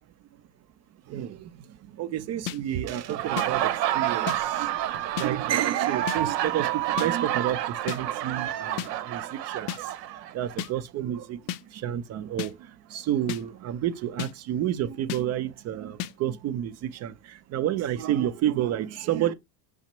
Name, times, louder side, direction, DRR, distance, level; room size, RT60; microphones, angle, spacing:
voice 1, 1.1-19.3, right 11 dB, 35° right, 0.5 m, -30 dB
sound 1, 2.5-2.6 3.4-3.5 4.3-4.4 5.2-5.3 6.1-6.2 7.0-7.1 7.9-8.0 8.8-8.9 9.7-9.8 10.6-10.7 11.5-11.6 12.4-12.5 13.3-13.4 14.2-14.3 15.1-15.2 16.0-16.1, left 12 dB, 50° left, 0.5 m, -32 dB
Laughter, 3.0-10.6, right 13 dB, 80° right, 0.8 m, -29 dB
5.7 x 2.0 x 4.3 m
hypercardioid pair, 100°, 49 cm